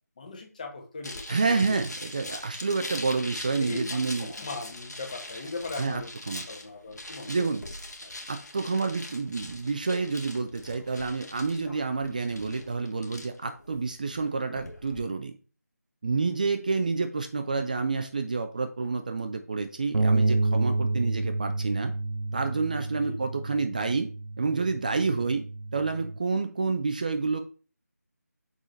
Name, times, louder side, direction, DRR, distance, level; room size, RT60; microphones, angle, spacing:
voice 1, 0.2-1.2 1.5-1.8 3.6-7.6 8.0-8.1 22.9-23.2, left 3 dB, 25° left, 3 dB, 1.5 m, -39 dB
sound 1, 1.0-15.0, left 1 dB, 85° left, 1.8 m, -42 dB
voice 2, 1.3-4.3 5.8-6.4 7.3-7.6 8.3-15.4 16.0-21.9 22.3-24.1 24.4-25.4 25.7-27.4, right 4 dB, 30° right, 7 dB, 0.5 m, -29 dB
Bass guitar, 19.9-26.2, right 2 dB, 85° right, 0.5 m, -29 dB
6.4 x 4.8 x 3.9 m, 0.35 s
figure-of-eight pair, 165°, 9 cm